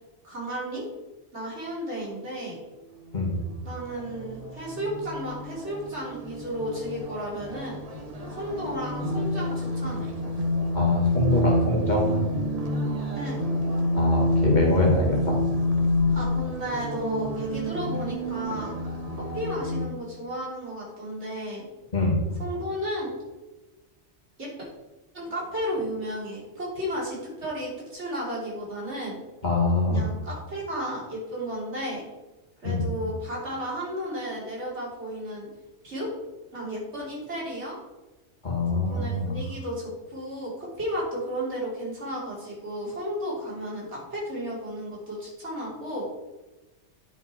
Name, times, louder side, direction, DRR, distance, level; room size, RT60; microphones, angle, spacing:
voice 1, 0.2-0.9 1.3-2.6 3.6-7.8 8.4-10.1 13.2-13.4 16.1-18.7 19.3-21.7 22.4-23.1 24.4-24.7 25.1-29.2 29.9-32.0 32.6-35.5 35.8-36.1 36.5-37.8 38.9-46.1, equal, 70° right, -5 dB, 3.5 m, -33 dB
sound 1, 3.1-19.9, left 1 dB, 35° right, 1.2 m, -28 dB
voice 2, 10.7-12.1 13.9-15.4 21.9-22.2 29.4-30.0 32.6-32.9 38.4-39.3, left 2 dB, 40° left, -2 dB, 2.0 m, -24 dB
10.0 x 5.6 x 4.4 m, 1.1 s
omnidirectional pair, 1.2 m